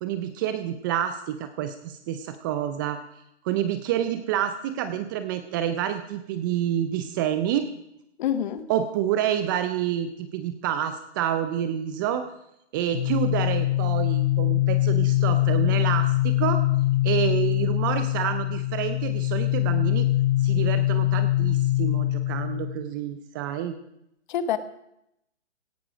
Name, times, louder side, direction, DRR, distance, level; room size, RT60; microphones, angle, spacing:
voice 1, 0.0-3.0 3.4-7.7 8.7-12.2 12.7-16.6 17.0-20.1 20.4-23.7, right 10 dB, 20° right, 10 dB, 0.5 m, -28 dB
voice 2, 8.2-8.7 24.3-24.6, left 9 dB, 40° left, 13 dB, 1.2 m, -26 dB
sound 1, 12.9-22.7, left 15 dB, 90° left, 6.3 m, -23 dB
17.5 x 11.5 x 4.9 m, 0.80 s
hypercardioid pair, 140°, 35 cm